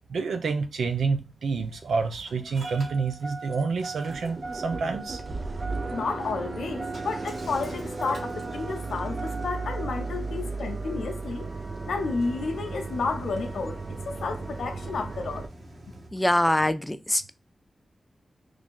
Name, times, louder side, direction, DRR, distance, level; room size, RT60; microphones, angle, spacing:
voice 1, 0.1-5.2, right 4 dB, 85° right, 0.5 m, -28 dB
Engine starting, 1.0-16.1, right 3 dB, 70° right, 1.5 m, -42 dB
sound 1, 1.8-1.9 2.4-2.8 3.1-3.2 3.5-3.6 3.9-15.5, right 3 dB, 50° right, 0.6 m, -35 dB
voice 2, 5.9-11.5 11.8-15.5, left 4 dB, 90° left, 0.5 m, -31 dB
voice 3, 16.1-17.3, left 1 dB, 15° left, 0.4 m, -23 dB
3.2 x 2.4 x 3.7 m
cardioid pair, 45°, 0 cm